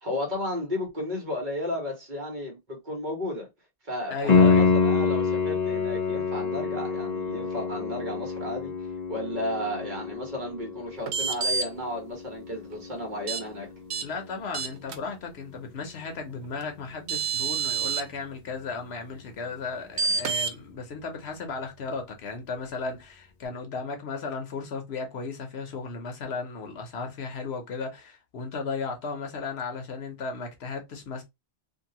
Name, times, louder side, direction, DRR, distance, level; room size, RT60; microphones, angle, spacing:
voice 1, 0.0-3.5 3.8-8.7 9.1-13.8, left 1 dB, 45° right, 1.4 m, -33 dB
voice 2, 4.1-4.7 14.0-31.2, left 4 dB, 75° left, 1.1 m, -35 dB
Piano, 4.3-14.9 18.2-18.3, left 5 dB, 45° left, 0.8 m, -27 dB
sound 1, 11.1-11.6 13.3-13.4 13.9-14.0 14.5-15.0 16.6-16.7 17.1-18.0 20.0-20.5, right 5 dB, 85° right, 0.9 m, -27 dB
2.8 x 2.7 x 2.8 m
omnidirectional pair, 1.1 m